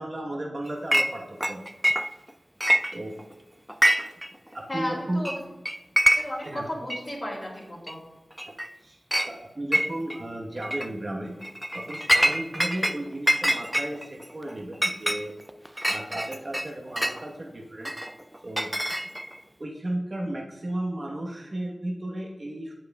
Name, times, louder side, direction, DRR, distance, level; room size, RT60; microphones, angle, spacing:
voice 1, 0.0-1.6 2.9-3.2 4.5-5.3 6.4-6.7 8.5-8.6 8.8-9.0 9.2-11.4 11.7-15.3 15.8-17.9 18.4-19.1 19.6-22.7, right 1 dB, 45° right, -1 dB, 1.1 m, -34 dB
Chink clink, 0.9-1.1 1.4-2.3 2.6-3.3 3.7-4.3 4.5-4.6 5.2-5.4 5.6-6.5 6.9-7.0 7.9-8.0 8.4-8.7 9.1-9.3 9.7-10.2 10.6-10.9 11.4-13.0 13.3-17.2 17.8-19.4, equal, 5° right, 0.4 m, -25 dB
voice 2, 4.7-5.4 6.2-8.0, left 1 dB, 40° left, -4 dB, 2.5 m, -34 dB
8.9 x 7.8 x 2.3 m, 1.1 s
cardioid pair, 45°, 0 cm